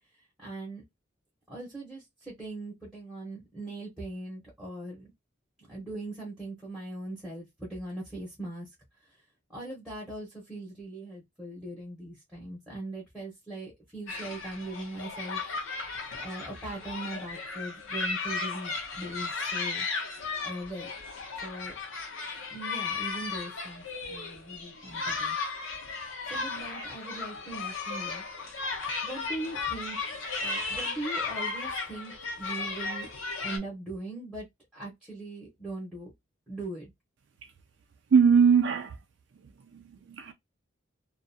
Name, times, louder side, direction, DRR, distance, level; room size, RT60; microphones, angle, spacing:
voice 1, 0.4-0.8 1.5-5.1 5.6-8.7 9.0-9.2 9.5-15.4 16.2-19.9 20.4-20.9 21.4-21.8 22.5-25.4 26.3-28.2 29.0-30.0 30.3-33.1 33.4-34.5 34.7-36.1 36.5-36.9, right 2 dB, 5° right, 0.8 m, -40 dB
sound 1, 14.1-33.6, left 4 dB, 85° left, 0.7 m, -35 dB
voice 2, 38.1-39.0 39.4-40.3, right 6 dB, 60° right, 0.3 m, -22 dB
2.4 x 2.2 x 2.5 m
head